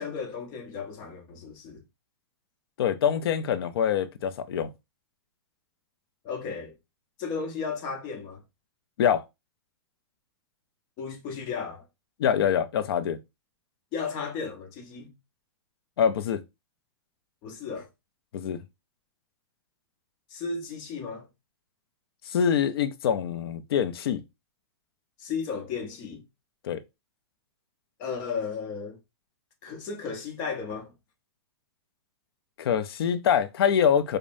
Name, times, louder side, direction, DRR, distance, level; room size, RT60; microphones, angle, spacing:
voice 1, 0.0-1.8 6.2-6.7 7.2-8.4 11.0-11.9 13.9-15.1 17.4-17.9 20.3-21.3 25.2-26.2 28.0-29.0 29.6-30.9, left 5 dB, 25° left, 0.8 m, -34 dB
voice 2, 2.8-4.7 9.0-9.2 12.2-13.2 16.0-16.4 18.3-18.6 22.3-24.2 26.6-26.8 32.6-34.2, left 8 dB, 65° left, 0.5 m, -25 dB
5.0 x 2.1 x 2.6 m
supercardioid pair, 165°, 14 cm